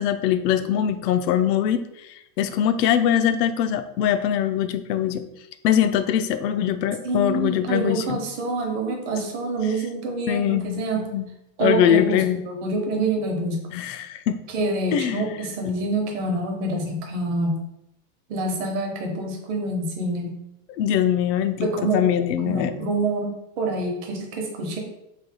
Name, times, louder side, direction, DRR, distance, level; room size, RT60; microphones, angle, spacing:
voice 1, 0.0-1.8 2.4-5.2 5.6-8.2 10.3-11.3 11.6-12.4 13.7-14.4 14.9-15.3 20.8-21.7 21.9-22.7, left 10 dB, 90° left, 10 dB, 0.5 m, -22 dB
voice 2, 7.0-11.0 11.6-13.7 14.5-17.6 18.3-20.3 21.6-22.1 22.4-24.8, right 2 dB, 45° right, 2 dB, 0.8 m, -26 dB
3.2 x 2.3 x 4.1 m, 0.84 s
supercardioid pair, 175°, 48 cm